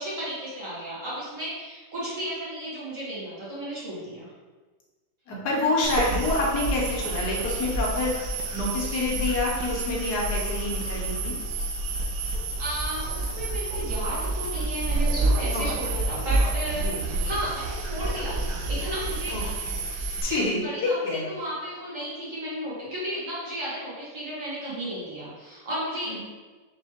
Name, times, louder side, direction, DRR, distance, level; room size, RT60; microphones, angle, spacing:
voice 1, 0.0-4.3 12.6-26.2, equal, 50° right, -9 dB, 1.8 m, -34 dB
voice 2, 5.3-11.3 15.5-16.0 16.8-17.0 19.3-19.4 20.2-21.3 26.1-26.2, left 2 dB, 75° left, -3 dB, 1.4 m, -27 dB
sound 1, 5.8-20.2, right 2 dB, 80° right, 1.1 m, -29 dB
4.6 x 3.2 x 2.9 m, 1.3 s
omnidirectional pair, 1.8 m